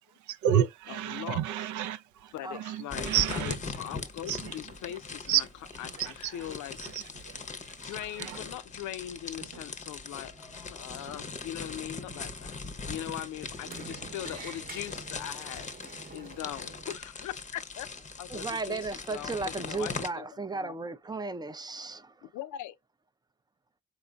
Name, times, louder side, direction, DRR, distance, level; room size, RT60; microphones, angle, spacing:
voice 1, 0.3-3.6 4.3-4.4 5.3-5.4 6.0-6.3 6.8-7.3 7.7-8.4, right 10 dB, 80° right, 0.6 m, -30 dB
voice 2, 0.9-1.7 2.3-5.5 5.8-6.8 7.8-12.6 12.9-17.9 18.2-20.8 22.2-22.8, left 12 dB, 75° left, 0.5 m, -41 dB
sound 1, 2.9-20.1, left 4 dB, 25° left, 0.7 m, -40 dB
sound 2, 4.5-4.9 5.8-6.3 7.1-7.7 8.2-8.7 9.4-10.0 10.9-11.4 11.9-12.6 13.7-14.3, right 7 dB, 55° right, 0.9 m, -53 dB
Sliding door, 10.0-17.0, right 3 dB, 30° right, 0.9 m, -49 dB
voice 3, 18.3-22.3, right 3 dB, 15° right, 0.4 m, -35 dB
4.1 x 3.9 x 2.2 m
cardioid pair, 90°, 30 cm